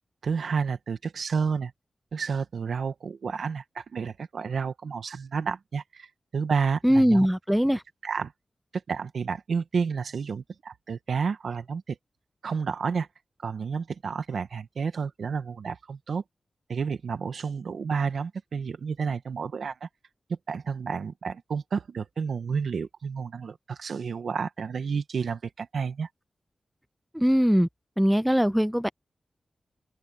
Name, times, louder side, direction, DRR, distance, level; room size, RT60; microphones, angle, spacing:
voice 1, 0.2-1.7 2.1-6.1 6.3-7.3 8.0-8.3 8.9-12.0 12.4-13.1 13.4-16.2 16.7-19.9 20.3-26.1, right 5 dB, 80° right, 1.6 m, -30 dB
voice 2, 6.8-7.8 27.1-27.7 28.0-28.9, equal, 5° right, 0.4 m, -21 dB
open air
cardioid pair, 50°, 0 cm